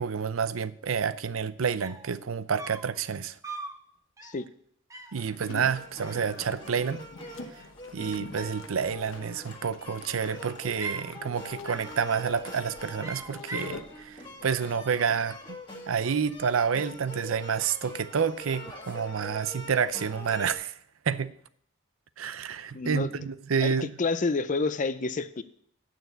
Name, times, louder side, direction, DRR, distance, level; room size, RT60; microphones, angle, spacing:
voice 1, 0.0-3.4 5.1-7.1 7.9-15.4 15.9-20.7 21.1-21.3 22.2-23.9, right 6 dB, 85° right, 0.6 m, -29 dB
sound 1, 1.5-1.6 1.8-2.1 2.6-3.0 3.4-3.8 4.2-4.5 4.9-5.2 6.0-6.9 7.2-7.9 9.1-9.7 10.2-11.1 11.6-12.0 12.3-12.6 13.0-13.8, right 3 dB, 15° right, 0.9 m, -41 dB
sound 2, 5.2-14.1, left 3 dB, 75° left, 0.9 m, -46 dB
sound 3, 5.4-20.5, left 1 dB, 25° left, 1.9 m, -44 dB
voice 2, 22.7-23.3 23.6-25.4, left 3 dB, 40° left, 0.5 m, -29 dB
9.2 x 6.4 x 8.0 m
head